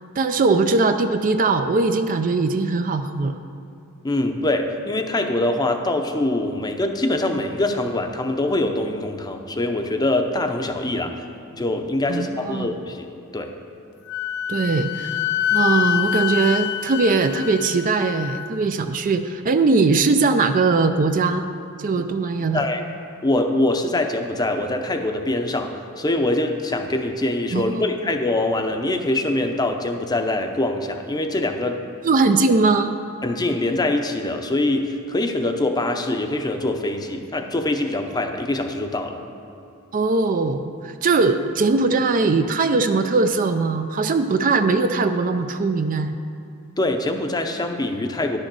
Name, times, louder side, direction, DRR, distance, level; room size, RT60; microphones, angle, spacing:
voice 1, 0.2-3.4 12.1-12.7 14.5-15.3 15.5-21.4 21.8-22.7 27.5-27.9 32.0-32.9 39.9-46.2, right 3 dB, 35° right, 8 dB, 0.4 m, -20 dB
voice 2, 4.0-11.1 11.6-13.1 13.3-13.5 22.5-22.8 23.2-25.7 26.0-31.8 33.2-39.2 46.8-48.4, left 2 dB, 20° left, 5 dB, 0.6 m, -23 dB
Wind instrument woodwind instrument, 14.1-18.5, left 11 dB, 50° left, 0.3 m, -25 dB
11.0 x 6.5 x 6.1 m, 2.7 s
head